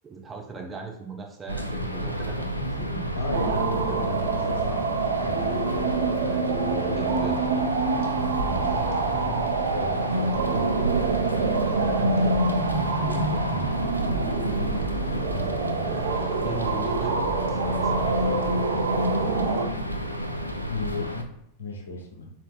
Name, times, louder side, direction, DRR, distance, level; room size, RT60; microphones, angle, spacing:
voice 1, 0.0-3.1 3.7-4.1 6.0-7.4 8.2-8.4 9.1-9.6 10.9-12.4 12.9-13.5 14.4-14.8 15.8-18.3, right 4 dB, 20° right, 1 dB, 0.8 m, -39 dB
sound 1, 1.5-21.2, equal, 85° left, 0.4 m, -31 dB
voice 2, 3.1-5.7 8.2-9.3 9.6-10.7 13.5-13.7 15.3-15.6 20.7-22.3, left 2 dB, 65° left, 1 dB, 0.9 m, -35 dB
sound 2, 3.3-19.6, right 3 dB, 60° right, 0.5 m, -26 dB
4.4 x 3.8 x 2.4 m, 0.82 s
figure-of-eight pair, 90°, 0 cm